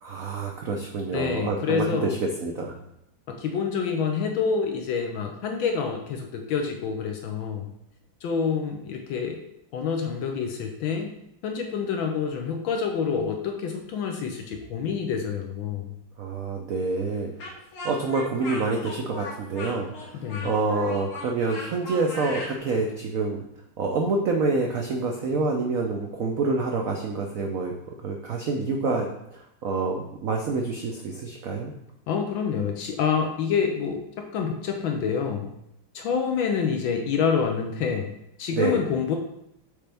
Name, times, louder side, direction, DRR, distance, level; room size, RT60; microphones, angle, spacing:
voice 1, 0.0-2.7 16.2-17.3 17.8-23.4 23.8-27.7 28.0-29.1 29.3-31.7 38.5-38.8, right 3 dB, 80° right, 1 dB, 0.7 m, -27 dB
voice 2, 1.1-2.2 3.3-7.6 8.2-9.4 9.7-11.1 11.4-15.9 20.1-20.5 32.1-34.0 34.3-35.5 35.9-38.1 38.4-39.2, left 6 dB, 75° left, 3 dB, 1.4 m, -27 dB
Speech, 17.4-22.6, left 1 dB, 90° left, 2.2 m, -37 dB
6.7 x 4.3 x 3.4 m, 0.78 s
omnidirectional pair, 2.3 m